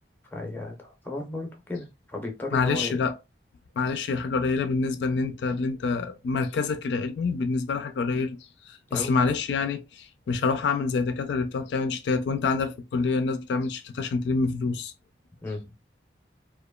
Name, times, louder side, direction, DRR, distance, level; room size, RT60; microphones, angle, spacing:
voice 1, 0.3-3.0 8.9-9.1 15.4-15.7, left 2 dB, 10° left, 0.6 m, -35 dB
voice 2, 2.5-3.1 3.8-8.4 8.6-14.9, left 4 dB, 75° left, 0.3 m, -27 dB
2.9 x 2.2 x 2.2 m
head